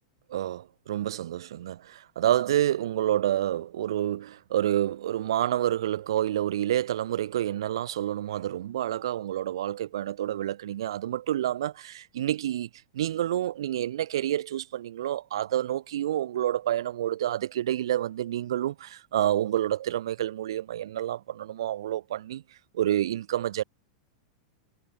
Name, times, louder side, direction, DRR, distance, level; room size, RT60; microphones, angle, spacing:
voice 1, 0.3-22.4 22.7-23.6, right 12 dB, 60° right, 0.6 m, -28 dB
figure-of-eight pair, 95°, 3 cm